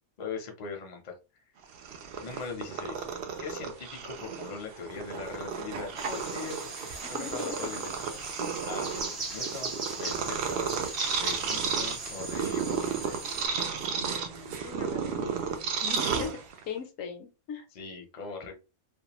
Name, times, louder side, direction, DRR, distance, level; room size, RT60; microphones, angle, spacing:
voice 1, 0.2-1.4 2.2-3.1 3.4-6.9 7.2-7.9 8.6-8.9 9.3-10.7 11.1-12.9 17.7-18.5, left 5 dB, 45° left, 2 dB, 0.6 m, -40 dB
Purr, 1.6-16.8, right 6 dB, 70° right, 0.5 m, -33 dB
sound 1, 6.0-13.5, right 3 dB, 30° right, 0.9 m, -39 dB
voice 2, 7.1-7.8 8.4-8.5 14.0-16.3 16.7-17.6, left 6 dB, 75° left, 6 dB, 0.9 m, -40 dB
2.5 x 2.2 x 2.9 m, 0.30 s
omnidirectional pair, 1.5 m